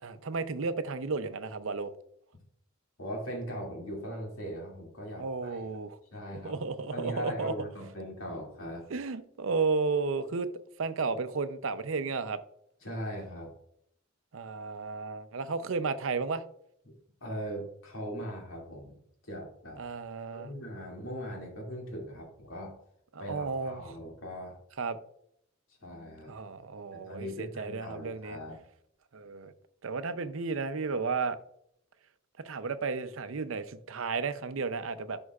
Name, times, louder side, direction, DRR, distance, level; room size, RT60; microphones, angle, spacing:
voice 1, 0.0-1.9 5.2-6.0 6.4-7.5 8.9-10.5 10.8-12.4 14.3-16.4 19.8-20.5 23.3-24.0 24.8-25.0 26.3-28.4 29.1-29.5 29.8-31.4 32.4-35.2, right 4 dB, 70° right, 0.6 m, -33 dB
voice 2, 3.0-5.6 6.1-6.5 6.9-8.8 12.8-13.5 16.8-16.9 17.2-19.0 19.3-19.8 20.3-22.7 23.2-24.6 25.8-26.3 26.9-28.6, equal, 80° left, 2.4 m, -39 dB
11.0 x 5.4 x 2.4 m
head